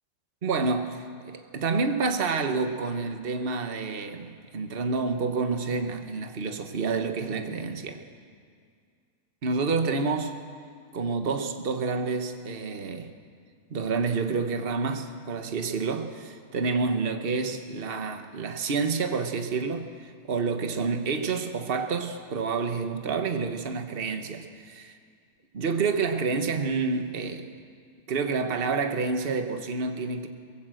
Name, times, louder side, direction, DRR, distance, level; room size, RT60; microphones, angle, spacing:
voice 1, 0.4-8.0 9.4-10.4 10.9-13.1 13.7-25.0 25.5-27.5 28.1-30.3, right 4 dB, 35° right, 7 dB, 1.3 m, -28 dB
23.0 x 18.5 x 7.8 m, 2.1 s
omnidirectional pair, 1.9 m